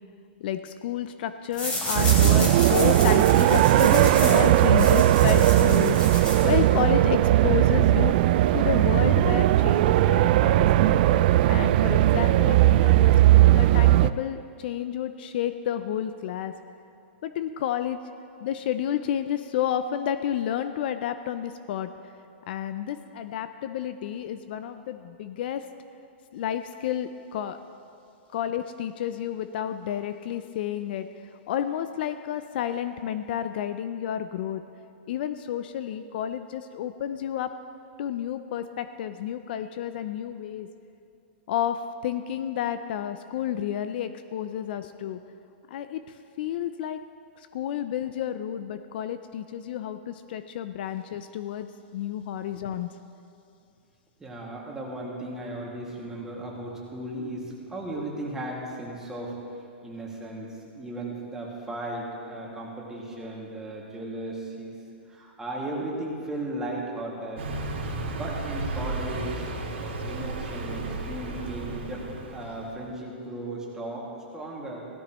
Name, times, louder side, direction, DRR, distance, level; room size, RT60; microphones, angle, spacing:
voice 1, 0.4-8.2 8.5-11.0 11.5-16.5 17.2-18.0 18.4-21.9 22.5-25.6 26.3-27.6 28.3-31.1 31.5-34.6 35.1-37.5 38.0-40.7 41.5-45.2 45.7-46.0 46.4-47.0 47.4-52.9, left 10 dB, 55° left, 10 dB, 0.5 m, -30 dB
sound 1, 1.5-6.8, left 1 dB, 15° left, 3.2 m, -32 dB
sound 2, 1.9-14.1, right 14 dB, 50° right, 0.3 m, -18 dB
voice 2, 54.2-59.3 59.8-64.8 65.1-67.4 68.0-69.5 70.0-72.0 72.3-74.9, right 1 dB, 10° right, -4 dB, 2.2 m, -36 dB
Car passing by, 67.4-72.9, right 2 dB, 80° right, 2.5 m, -34 dB
16.5 x 13.0 x 3.1 m, 2.6 s
hypercardioid pair, 140°, 6 cm